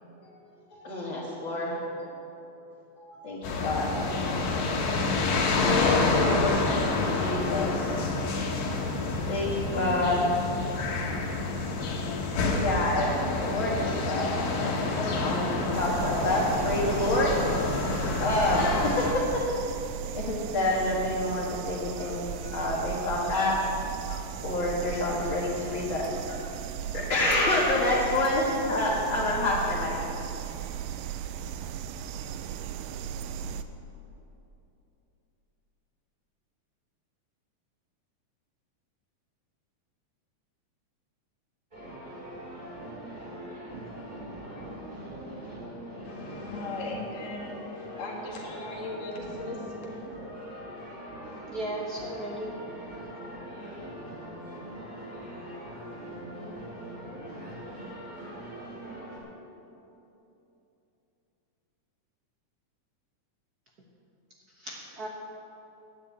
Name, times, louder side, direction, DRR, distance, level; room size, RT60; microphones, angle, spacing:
voice 1, 0.7-1.8 3.0-3.9 4.2-4.3 5.5-6.6 6.9-8.0 8.6-10.2 11.4-11.5 12.6-17.4 18.2-19.4 20.1-23.6 24.1-26.4 26.9-29.9, left 2 dB, 45° left, -6 dB, 2.1 m, -28 dB
sound 1, 3.4-19.1, left 3 dB, 80° left, 2.8 m, -28 dB
sound 2, 15.7-33.6, right 8 dB, 85° right, 1.5 m, -36 dB
sound 3, 41.7-59.2, right 1 dB, 20° right, 2.7 m, -41 dB
voice 2, 46.0-49.9, left 2 dB, 30° left, -3 dB, 1.7 m, -38 dB
voice 3, 51.5-52.5 64.6-65.1, right 1 dB, 55° right, -3 dB, 1.1 m, -35 dB
9.8 x 9.7 x 8.3 m, 2.9 s
omnidirectional pair, 3.5 m